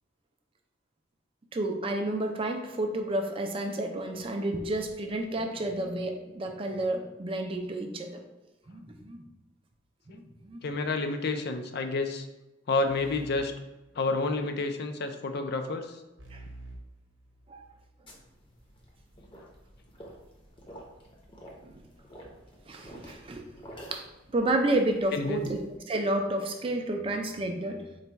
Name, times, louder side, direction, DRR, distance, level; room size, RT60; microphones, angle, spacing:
voice 1, 1.5-8.2 8.7-9.2 10.1-10.6 16.3-16.4 17.5-17.7 21.6-21.8 22.7-23.5 23.9-24.1 24.3-25.6 25.9-27.8, right 1 dB, 30° right, 4 dB, 0.4 m, -30 dB
voice 2, 10.6-12.3 12.7-13.5 14.0-15.9 25.1-25.5, left 3 dB, 55° left, 6 dB, 0.4 m, -29 dB
sound 1, 12.9-14.5 16.2-17.9, right 1 dB, 65° right, 0.8 m, -49 dB
sound 2, 18.1-25.8, equal, 25° left, 0.7 m, -50 dB
4.0 x 2.2 x 4.4 m, 1.0 s
head